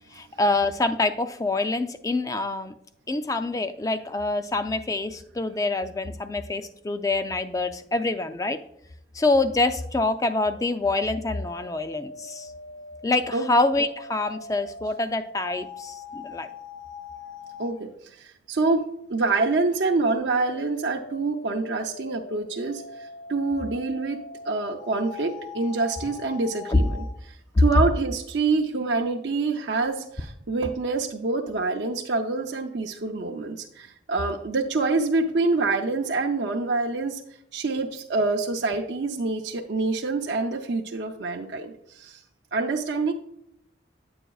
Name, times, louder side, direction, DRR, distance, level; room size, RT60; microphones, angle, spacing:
voice 1, 0.1-2.7 3.1-8.6 9.1-12.5 13.0-16.5 26.7-26.8, left 2 dB, 20° left, 9 dB, 0.3 m, -26 dB
sound 1, 10.4-17.8 19.8-27.1, left 4 dB, 80° left, 1.5 m, -42 dB
voice 2, 17.6-18.8 19.1-37.2 37.5-42.2 42.5-43.1, right 3 dB, 70° right, 1 dB, 0.5 m, -26 dB
9.9 x 7.8 x 2.3 m, 0.75 s
head